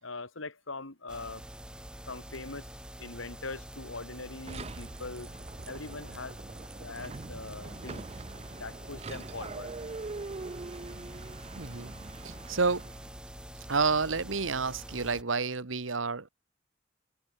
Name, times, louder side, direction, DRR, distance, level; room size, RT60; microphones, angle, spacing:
voice 1, 0.0-1.4 2.1-2.7 3.0-5.3 5.7-6.4 6.8-8.1 8.6-9.7, left 3 dB, 90° left, 3.3 m, -41 dB
sound 1, 1.1-15.2, equal, 5° right, 1.6 m, -46 dB
sound 2, 4.5-13.2, right 3 dB, 35° right, 0.5 m, -43 dB
voice 2, 11.5-11.9 12.2-12.9 13.7-16.3, right 4 dB, 80° right, 1.4 m, -29 dB
head